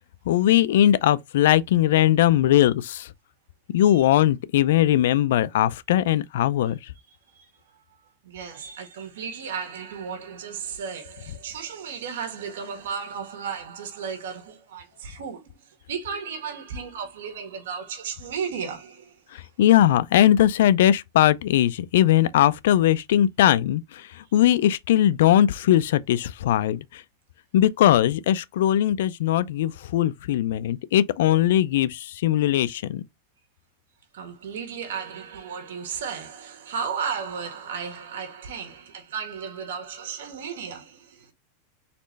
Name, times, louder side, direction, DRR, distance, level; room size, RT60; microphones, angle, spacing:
voice 1, 0.3-3.1 3.7-6.9 19.3-27.0 27.5-33.0, left 12 dB, 70° left, 0.4 m, -20 dB
voice 2, 6.9-7.8 8.2-19.2 34.1-41.3, right 6 dB, 85° right, 1.9 m, -34 dB
4.3 x 3.1 x 3.9 m
supercardioid pair, 155°, 0 cm